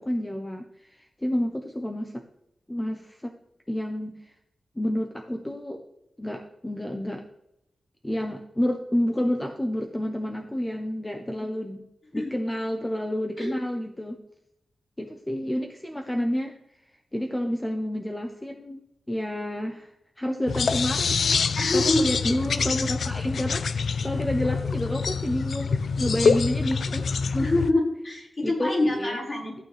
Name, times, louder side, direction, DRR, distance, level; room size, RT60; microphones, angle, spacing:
voice 1, 0.0-2.2 2.7-3.3 3.7-4.3 4.8-5.8 6.2-7.2 8.0-11.8 12.1-14.2 15.0-18.8 19.1-27.5 28.4-29.2, equal, 10° left, 4 dB, 0.7 m, -30 dB
sound 1, 20.5-27.7, left 5 dB, 70° left, 0.4 m, -25 dB
voice 2, 21.5-22.1 27.4-29.6, left 2 dB, 40° left, -6 dB, 5.1 m, -25 dB
14.5 x 9.2 x 3.4 m, 0.82 s
wide cardioid pair, 165°, 0 cm